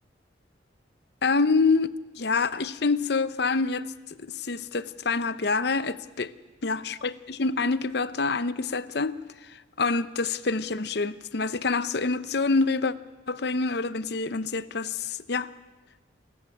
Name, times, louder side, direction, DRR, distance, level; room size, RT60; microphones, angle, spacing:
voice 1, 1.2-6.3 6.6-9.1 9.5-12.9 13.3-15.5, left 4 dB, 60° left, 0.8 m, -26 dB
29.0 x 13.5 x 8.6 m
head